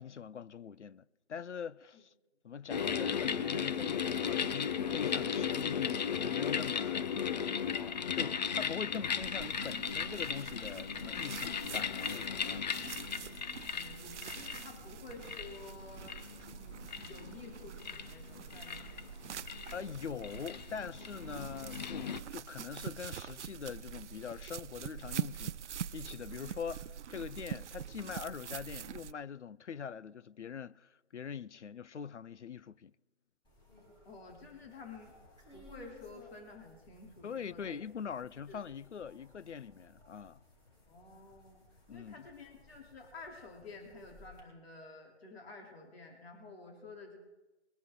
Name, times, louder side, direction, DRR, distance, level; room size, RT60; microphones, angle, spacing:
voice 1, 0.0-2.1 2.4-7.6 8.1-12.8 19.7-32.9 37.2-40.4 41.9-42.2, left 7 dB, 90° left, 0.6 m, -43 dB
sound 1, 2.7-22.2, left 7 dB, 40° left, 0.6 m, -36 dB
sound 2, 9.2-29.1, right 8 dB, 80° right, 0.5 m, -45 dB
voice 2, 13.7-16.2 16.6-19.9 34.0-35.1 35.5-37.8 38.2-38.6 40.9-41.6 41.9-47.2, left 3 dB, 60° left, 3.5 m, -51 dB
sound 3, 33.4-44.4, left 2 dB, 10° left, 5.0 m, -60 dB
22.0 x 11.0 x 3.8 m
figure-of-eight pair, 150°, 34 cm